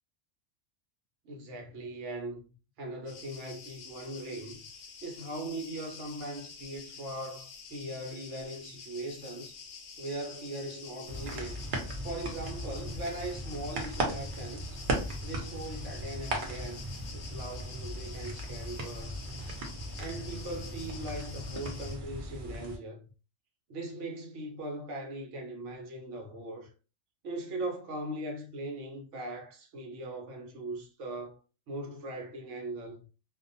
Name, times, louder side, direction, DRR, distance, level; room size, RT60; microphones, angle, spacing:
voice 1, 1.2-2.4 2.8-4.7 5.0-9.5 10.0-11.6 12.0-14.8 15.2-19.3 20.0-23.0 23.7-26.7 27.2-31.4 31.7-33.1, right 1 dB, 70° right, 1.1 m, -40 dB
sound 1, 3.1-22.0, left 5 dB, 65° left, 0.8 m, -48 dB
sound 2, 11.1-22.8, right 1 dB, 50° right, 0.7 m, -37 dB
2.5 x 2.1 x 2.6 m
omnidirectional pair, 1.3 m